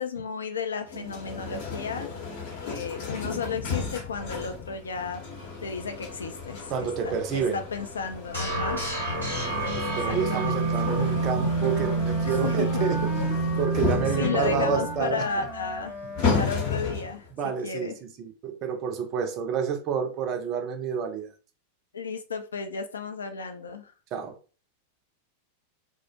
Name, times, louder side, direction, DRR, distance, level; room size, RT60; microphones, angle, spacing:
voice 1, 0.0-2.1 2.7-5.2 5.6-8.8 9.9-10.7 12.2-13.0 14.2-16.0 16.4-18.0 21.9-23.9, left 5 dB, 70° left, 0.3 m, -33 dB
sound 1, 0.9-17.3, left 5 dB, 50° left, 0.7 m, -34 dB
voice 2, 6.7-7.6 9.2-13.1 13.6-15.2 17.4-21.3 24.1-24.4, right 7 dB, 35° right, 0.4 m, -29 dB
sound 2, 8.3-15.3, right 3 dB, 85° left, 1.0 m, -28 dB
Wind instrument woodwind instrument, 11.4-16.9, left 1 dB, 20° left, 0.8 m, -38 dB
2.3 x 2.0 x 2.7 m
figure-of-eight pair, 90°, 0 cm